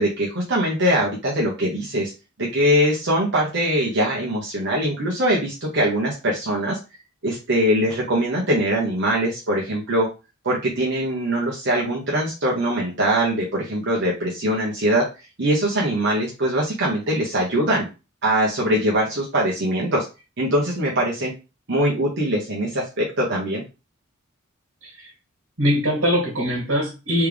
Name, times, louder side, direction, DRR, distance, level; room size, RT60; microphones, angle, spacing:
voice 1, 0.0-2.1 2.5-6.8 7.2-10.1 10.4-15.0 15.4-17.9 18.2-20.0 20.4-21.3 21.7-23.6, equal, 55° right, -4 dB, 1.1 m, -22 dB
voice 2, 25.6-27.3, equal, 70° right, -3 dB, 1.9 m, -22 dB
3.5 x 3.3 x 3.4 m, 0.29 s
head